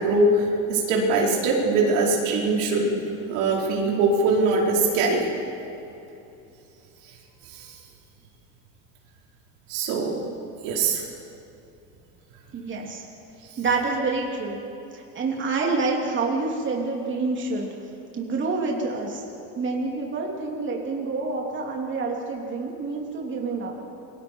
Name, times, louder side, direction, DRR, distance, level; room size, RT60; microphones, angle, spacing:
voice 1, 0.0-3.0 3.3-5.2 7.5-7.7 9.7-10.1 10.6-11.0, right 3 dB, 85° right, -2 dB, 5.0 m, -22 dB
voice 2, 12.5-13.0 13.6-14.6 14.9-17.7 18.1-19.2 19.6-23.7, right 3 dB, 30° right, -1 dB, 3.1 m, -27 dB
28.5 x 23.5 x 4.7 m, 2.8 s
cardioid pair, 135°, 37 cm